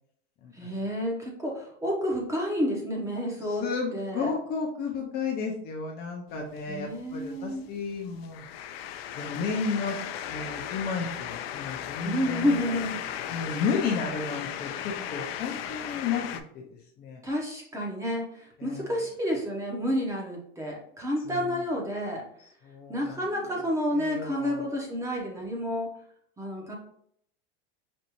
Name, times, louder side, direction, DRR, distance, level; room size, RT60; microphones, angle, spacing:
voice 1, 0.5-3.6 3.9-4.3 6.7-7.7 12.0-13.0 17.2-22.2 22.9-25.9 26.4-26.7, equal, 10° right, -2 dB, 0.9 m, -30 dB
voice 2, 3.4-8.5 9.1-10.0 10.2-12.6 13.3-16.2 16.5-16.6 17.0-17.2 18.6-19.0 21.2-21.6 22.4-23.6 23.9-24.7, left 5 dB, 35° left, 0 dB, 0.6 m, -33 dB
sound 1, 6.3-16.4, left 10 dB, 90° left, 0.5 m, -36 dB
5.3 x 2.6 x 2.9 m, 0.67 s
supercardioid pair, 150°, 29 cm